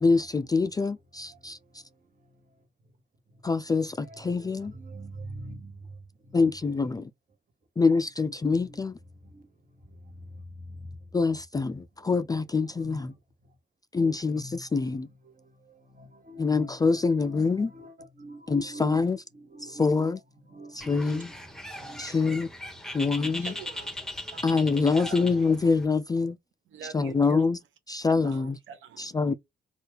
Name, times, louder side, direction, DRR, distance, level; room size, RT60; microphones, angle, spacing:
voice 1, 0.0-1.6 3.4-4.7 6.3-7.1 7.8-9.0 11.1-13.1 13.9-15.1 16.4-17.7 18.5-19.2 19.6-20.2 20.7-21.3 22.0-22.5 22.9-23.5 24.4-26.4 26.9-27.6 27.9-28.6 29.0-29.3, left 4 dB, 20° left, 0.3 m, -25 dB
voice 2, 1.3-2.6 3.3-3.4 4.0-6.5 8.4-8.8 9.2-11.1 12.5-13.2 13.9-14.7 15.2-19.0 19.3-20.1 20.5-21.2 21.7-22.2 23.1-23.5, right 1 dB, 40° right, 1.2 m, -45 dB
Bird, 20.8-25.9, left 1 dB, 5° left, 0.9 m, -39 dB
voice 3, 23.1-24.6 25.0-25.3 26.7-27.4 28.1-29.2, right 7 dB, 75° right, 0.6 m, -45 dB
2.7 x 2.4 x 3.2 m
supercardioid pair, 60°, 20 cm